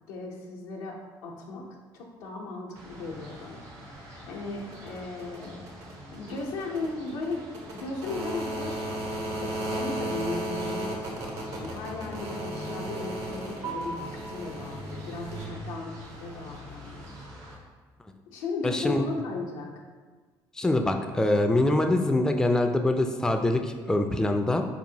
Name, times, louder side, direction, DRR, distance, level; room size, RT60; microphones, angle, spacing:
voice 1, 0.1-1.7 1.9-5.6 6.1-17.1 18.3-19.7, left 3 dB, 85° left, -1 dB, 0.6 m, -36 dB
sound 1, 2.7-17.5, right 1 dB, 75° right, 0.8 m, -37 dB
voice 2, 18.6-19.0 20.6-24.6, left 1 dB, 5° left, 5 dB, 0.3 m, -24 dB
4.2 x 2.9 x 2.7 m, 1.4 s
hypercardioid pair, 65°, 11 cm